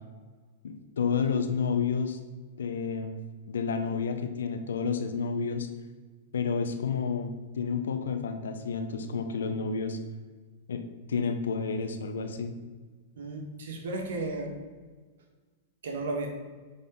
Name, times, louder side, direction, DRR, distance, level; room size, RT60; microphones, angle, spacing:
voice 1, 0.6-2.2 2.6-3.2 3.5-5.7 6.3-10.0 10.7-10.8 11.1-12.5, left 5 dB, 85° left, 7 dB, 1.0 m, -30 dB
voice 2, 13.2-14.5 15.8-16.3, right 2 dB, 80° right, 3 dB, 1.7 m, -34 dB
9.5 x 4.2 x 5.4 m, 1.4 s
hypercardioid pair, 125°, 0 cm